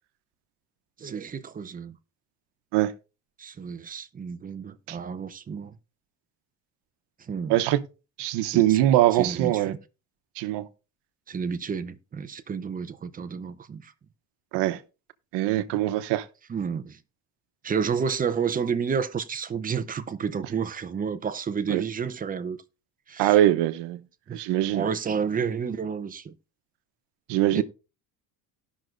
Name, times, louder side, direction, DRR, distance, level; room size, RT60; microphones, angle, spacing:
voice 1, 1.0-2.0 3.4-5.7 7.3-7.6 8.5-8.8 9.1-9.8 11.3-13.9 16.5-17.0 17.6-22.6 23.1-23.4 24.3-24.4 24.7-26.3 27.5-27.6, right 6 dB, 20° right, 0.7 m, -30 dB
voice 2, 7.5-7.8 8.2-9.7 10.4-10.7 14.5-14.8 15.3-16.2 21.7-21.8 23.2-24.0 24.3-24.9 27.3-27.6, right 14 dB, 80° right, 1.0 m, -22 dB
18.0 x 6.1 x 2.6 m
cardioid pair, 135°, 40 cm